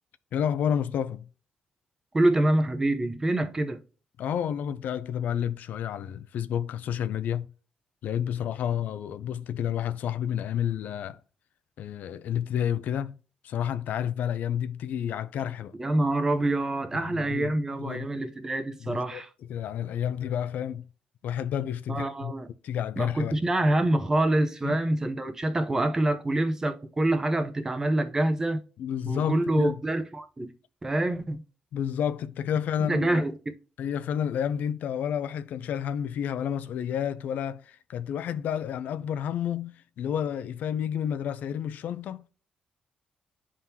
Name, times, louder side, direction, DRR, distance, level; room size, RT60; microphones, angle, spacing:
voice 1, 0.3-1.3 4.2-7.5 8.0-11.2 11.8-13.2 13.4-15.8 16.9-17.5 17.8-18.1 18.8-19.2 19.5-20.9 21.2-22.3 22.6-23.4 24.6-24.8 28.8-29.8 31.7-33.2 33.8-42.3, left 9 dB, 75° left, 0.4 m, -30 dB
voice 2, 2.1-3.8 15.8-19.3 21.9-22.5 23.0-28.6 29.1-30.5 30.8-31.4 32.9-33.5, right 1 dB, 20° right, 0.7 m, -26 dB
11.0 x 3.7 x 2.8 m
cardioid pair, 120°, 3 cm